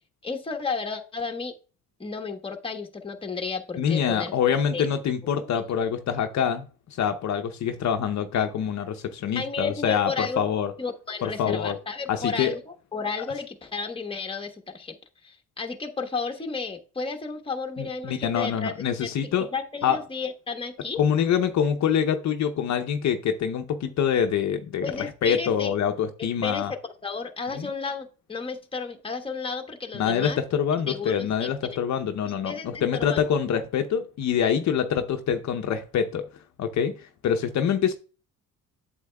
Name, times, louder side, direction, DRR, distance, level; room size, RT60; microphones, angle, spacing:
voice 1, 0.2-1.5 2.0-4.3 4.7-4.9 9.3-10.4 10.8-15.0 15.2-18.7 19.0-21.0 24.8-25.7 26.4-30.4 30.9-31.8 32.2-33.2, left 4 dB, 15° left, 1.1 m, -33 dB
voice 2, 3.8-10.7 11.2-11.8 12.1-12.5 17.8-19.5 19.8-20.0 21.0-26.7 27.5-27.7 29.9-36.2 36.6-37.9, left 8 dB, 60° left, 0.7 m, -25 dB
8.2 x 7.3 x 2.3 m
cardioid pair, 95°, 32 cm